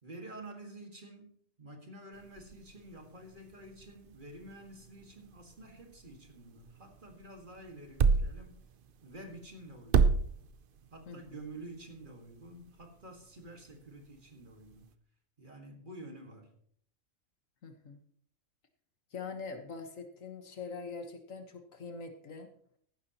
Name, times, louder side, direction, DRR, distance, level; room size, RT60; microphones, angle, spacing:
voice 1, 0.0-8.6 9.0-10.2 10.9-14.9 15.4-16.6, right 1 dB, 35° right, 3 dB, 2.0 m, -49 dB
sound 1, 2.1-14.9, right 5 dB, 50° right, 0.7 m, -35 dB
voice 2, 11.1-11.4 17.6-18.0 19.1-22.5, left 4 dB, 70° left, 6 dB, 1.7 m, -43 dB
15.0 x 12.0 x 3.0 m, 0.63 s
omnidirectional pair, 1.4 m